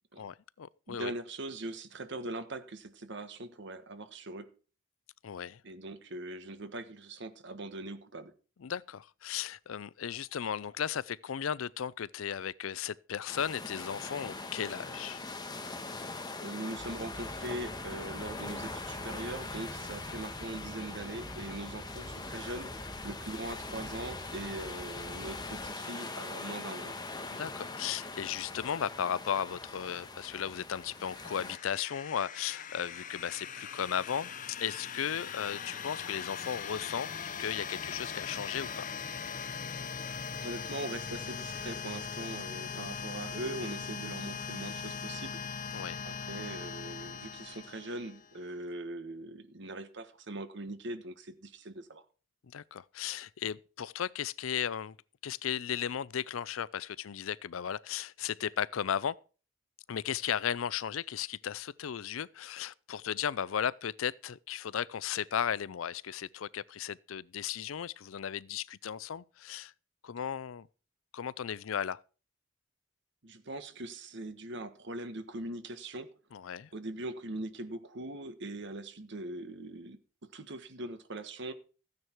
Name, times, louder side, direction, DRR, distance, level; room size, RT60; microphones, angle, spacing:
voice 1, 0.2-1.1 5.2-5.6 8.6-15.2 27.3-37.1 37.4-38.9 45.7-46.0 52.5-55.0 55.2-59.2 59.9-69.7 70.0-70.7 71.1-72.0 76.3-76.7, left 8 dB, 80° left, 0.5 m, -35 dB
voice 2, 0.9-4.5 5.6-8.3 16.4-22.7 23.0-27.0 40.4-45.4 46.0-52.0 73.2-76.1 76.7-80.0 80.3-81.5, right 2 dB, 60° right, 1.4 m, -41 dB
sound 1, 13.3-31.6, left 3 dB, 20° left, 1.3 m, -42 dB
sound 2, 16.8-25.7, right 1 dB, 15° right, 0.8 m, -48 dB
sound 3, 30.8-48.4, left 6 dB, 40° left, 0.9 m, -40 dB
14.0 x 9.5 x 4.6 m
head